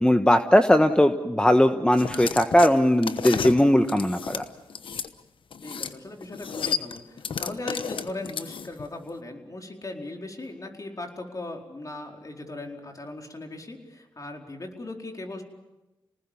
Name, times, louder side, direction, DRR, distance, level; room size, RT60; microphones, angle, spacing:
voice 1, 0.0-4.4, left 1 dB, 10° left, 7 dB, 1.3 m, -19 dB
sound 1, 1.9-5.1 5.5-6.0 6.2-8.9, left 6 dB, 70° left, 1.1 m, -32 dB
voice 2, 5.6-15.4, left 2 dB, 40° left, 2 dB, 4.5 m, -38 dB
27.5 x 19.0 x 7.3 m, 1.0 s
supercardioid pair, 45°, 9 cm